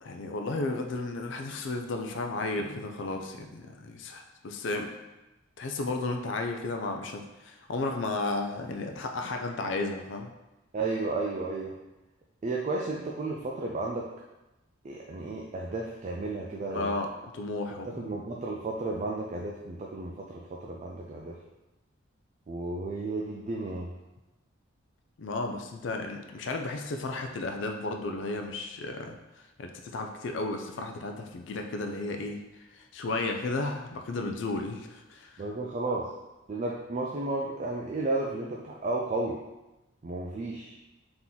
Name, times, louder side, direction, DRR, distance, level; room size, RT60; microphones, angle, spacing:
voice 1, 0.0-4.9 5.6-10.3 16.7-17.1 17.3-18.1 25.2-29.2 29.6-32.4 32.7-35.3, left 2 dB, 65° left, 4 dB, 0.4 m, -33 dB
voice 2, 10.7-11.7 12.4-14.1 14.8-16.9 17.7-21.4 22.5-23.9 35.4-36.1 36.5-39.4 40.0-40.8, right 2 dB, 35° right, -1 dB, 0.4 m, -33 dB
3.7 x 2.9 x 4.0 m, 1.0 s
head